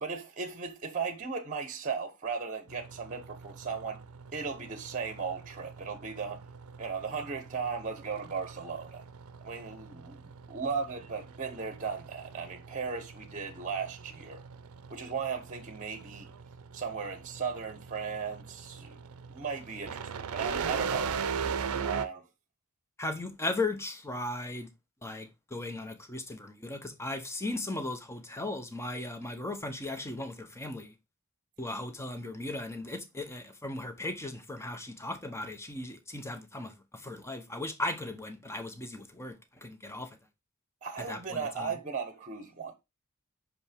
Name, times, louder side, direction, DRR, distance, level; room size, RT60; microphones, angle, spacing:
voice 1, 0.0-4.0 4.3-6.4 6.8-9.0 9.4-10.2 10.5-14.4 14.9-16.3 16.7-19.0 19.3-21.1 21.8-22.2 40.8-42.7, right 5 dB, 35° right, 0.9 m, -36 dB
sound 1, 2.7-22.1, right 6 dB, 75° right, 0.5 m, -40 dB
voice 2, 23.0-24.7 25.0-30.9 31.6-39.4 39.6-40.1 41.0-41.7, left 2 dB, 10° left, 0.9 m, -37 dB
5.5 x 5.3 x 3.5 m
head